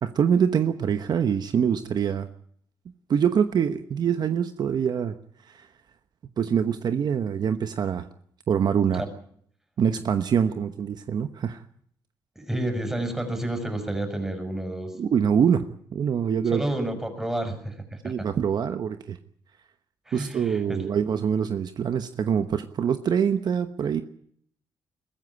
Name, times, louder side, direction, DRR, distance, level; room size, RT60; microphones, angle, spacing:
voice 1, 0.0-2.3 3.1-5.2 5.4-5.7 6.4-8.1 8.5-9.0 9.8-11.6 15.0-15.7 15.9-16.6 18.0-19.2 20.1-24.0, right 7 dB, 55° right, 9 dB, 1.0 m, -24 dB
voice 2, 12.3-14.9 16.5-18.3 20.1-20.8, right 1 dB, 5° right, 6 dB, 6.4 m, -30 dB
22.0 x 14.5 x 9.8 m, 0.66 s
cardioid pair, 95°, 8 cm